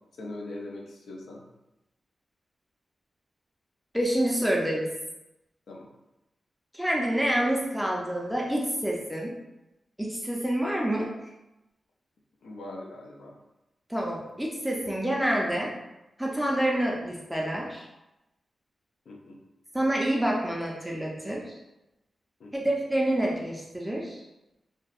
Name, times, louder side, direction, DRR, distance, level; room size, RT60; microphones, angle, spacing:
voice 1, 0.1-1.4 5.7-5.9 12.4-13.4 19.1-19.4 22.4-22.7, left 2 dB, 85° left, 0 dB, 0.4 m, -41 dB
voice 2, 3.9-4.9 6.7-9.4 10.0-11.1 13.9-15.7 16.2-17.8 19.7-21.5 22.5-24.2, right 1 dB, 5° right, -2 dB, 0.4 m, -27 dB
2.6 x 2.0 x 2.3 m, 0.94 s
wide cardioid pair, 95°, 0 cm